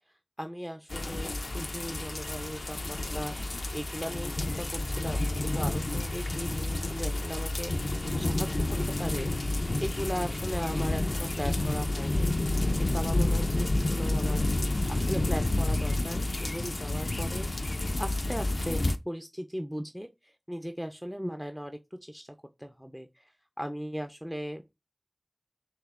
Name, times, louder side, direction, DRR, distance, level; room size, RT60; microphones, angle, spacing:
voice 1, 0.4-14.5 14.9-17.5 18.0-24.7, equal, 5° right, 0.4 m, -38 dB
sound 1, 0.9-19.0, left 2 dB, 75° left, 0.4 m, -30 dB
6.3 x 2.7 x 2.4 m
wide cardioid pair, 50°, 0 cm